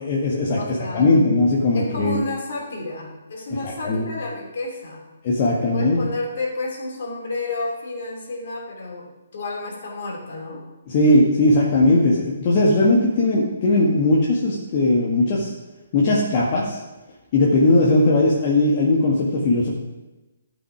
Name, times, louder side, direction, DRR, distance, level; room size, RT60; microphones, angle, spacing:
voice 1, 0.0-2.2 3.8-4.0 5.2-6.0 10.9-15.5 15.9-16.8 17.3-19.7, left 2 dB, 40° left, -5 dB, 1.7 m, -18 dB
voice 2, 0.6-1.1 1.7-5.0 5.6-10.6, left 2 dB, 55° left, -1 dB, 3.1 m, -31 dB
13.5 x 5.7 x 5.0 m, 1.1 s
figure-of-eight pair, 135°, 0 cm